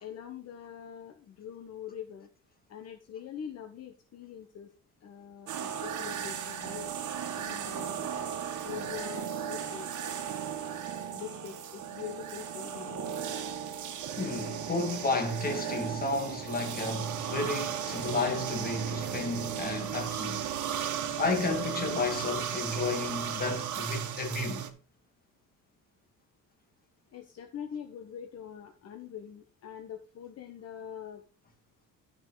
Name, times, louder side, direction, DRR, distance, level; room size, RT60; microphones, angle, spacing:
voice 1, 0.0-2.3 2.7-4.7 5.0-6.9 7.3-8.1 8.6-9.9 11.1-13.2 27.1-31.2, left 8 dB, 45° left, 1.2 m, -43 dB
sound 1, 5.5-24.7, right 8 dB, 60° right, 1.7 m, -36 dB
voice 2, 14.2-20.5 21.2-24.6, left 3 dB, 25° left, 1.9 m, -32 dB
12.5 x 5.7 x 3.9 m
cardioid pair, 145°, 35 cm